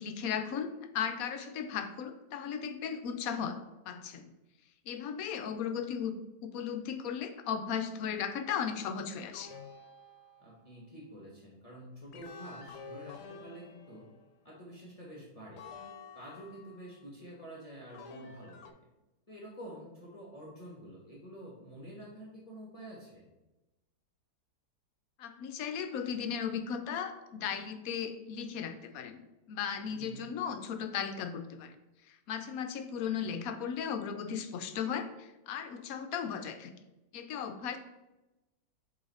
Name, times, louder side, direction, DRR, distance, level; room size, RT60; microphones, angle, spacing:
voice 1, 0.0-3.6 3.9-4.3 4.9-9.5 25.2-29.2 29.5-31.7 32.3-36.7 37.1-37.8, left 7 dB, 70° left, 8 dB, 1.0 m, -36 dB
sound 1, 9.3-10.8 12.1-14.5 15.6-17.0 17.9-18.7, left 4 dB, 90° left, 1.2 m, -50 dB
voice 2, 10.4-14.1 14.4-15.6 16.1-18.7 19.3-23.2 29.9-30.3, equal, 25° left, -5 dB, 1.3 m, -48 dB
7.9 x 3.1 x 4.1 m, 1.0 s
omnidirectional pair, 1.7 m